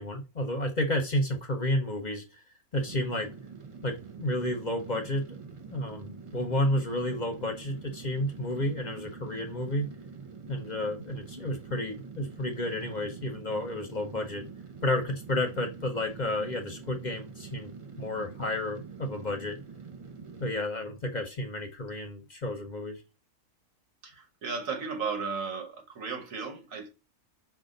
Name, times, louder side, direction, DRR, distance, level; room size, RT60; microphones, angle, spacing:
voice 1, 0.0-2.4 2.7-3.3 3.8-9.9 10.5-14.5 14.8-17.7 18.0-19.6 20.4-23.0, left 1 dB, 45° left, 0.7 m, -31 dB
sound 1, 2.8-20.5, right 5 dB, 40° right, 0.5 m, -45 dB
voice 2, 24.0-26.9, right 5 dB, 90° right, 1.7 m, -35 dB
5.5 x 2.4 x 3.8 m
omnidirectional pair, 1.3 m